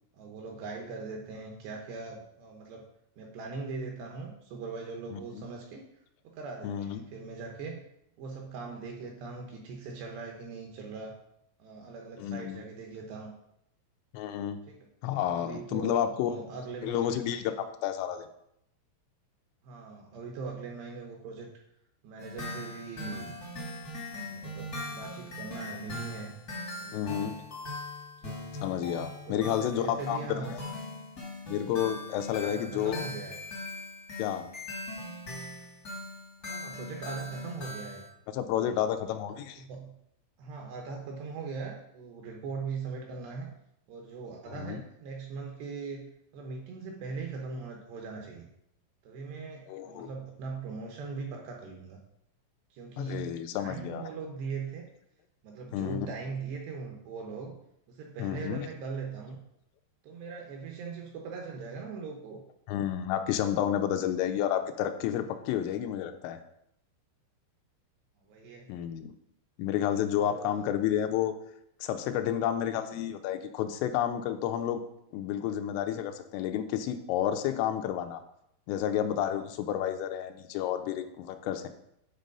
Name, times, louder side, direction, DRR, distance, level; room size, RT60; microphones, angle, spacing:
voice 1, 0.1-2.8 3.2-5.8 6.2-7.8 8.2-11.2 11.6-13.3 14.7-14.9 15.4-17.2 19.6-21.5 22.0-23.3 24.1-26.3 26.8-27.4 28.2-28.4 28.8-30.5 32.4-33.4 36.4-38.0 38.5-38.8 39.3-39.9 40.4-43.5 43.9-46.1 46.3-48.5 49.0-52.0 52.7-54.9 55.4-57.6 57.9-59.4 60.0-62.4 68.2-68.7 70.2-70.7, right 4 dB, 75° right, 1 dB, 2.6 m, -40 dB
voice 2, 5.1-5.4 6.6-7.0 12.2-12.6 14.1-14.6 15.0-16.4 16.8-18.3 26.9-27.3 28.6-30.6 31.5-33.0 34.2-34.5 38.3-39.6 44.5-44.8 49.7-50.1 53.0-54.1 55.7-56.1 58.2-58.7 62.7-66.4 68.7-69.1 69.6-71.3 71.8-74.8 75.1-78.2 78.7-81.7, left 10 dB, 85° left, 7 dB, 3.2 m, -31 dB
sound 1, 22.2-38.1, left 2 dB, 65° left, 0.9 m, -40 dB
9.3 x 4.1 x 5.3 m, 0.75 s
omnidirectional pair, 5.7 m